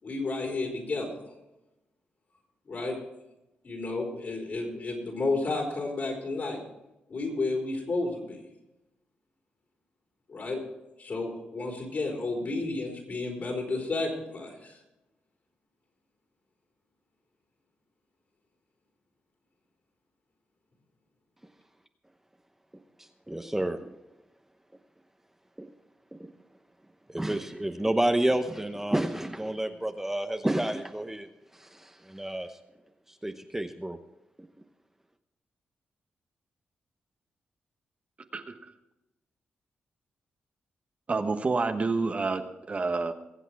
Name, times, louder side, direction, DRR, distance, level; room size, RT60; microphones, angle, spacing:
voice 1, 0.0-1.1 2.7-3.0 3.6-6.6 7.1-8.4 10.3-10.6 11.0-14.8, left 3 dB, 55° left, 0 dB, 4.7 m, -31 dB
voice 2, 23.3-23.9 25.6-25.7 26.2-26.3 27.1-31.3 31.6-32.5 33.2-34.0, right 1 dB, 10° right, 6 dB, 0.9 m, -29 dB
voice 3, 41.1-43.1, right 3 dB, 40° right, 7 dB, 1.1 m, -28 dB
22.0 x 8.2 x 4.7 m, 0.93 s
cardioid pair, 80°, 4 cm